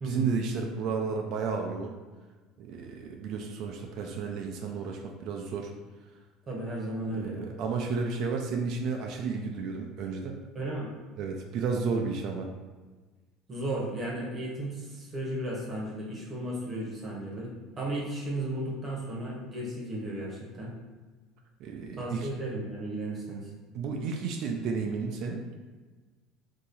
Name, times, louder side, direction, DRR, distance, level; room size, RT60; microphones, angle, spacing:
voice 1, 0.0-1.9 2.6-5.7 7.1-10.4 11.2-12.5 21.6-22.3 23.7-25.4, right 5 dB, 60° right, 2 dB, 0.4 m, -32 dB
voice 2, 6.5-7.5 10.5-10.9 13.5-20.7 22.0-23.5, right 1 dB, 30° right, -4 dB, 0.9 m, -34 dB
2.9 x 2.8 x 3.8 m, 1.3 s
cardioid pair, 125°, 0 cm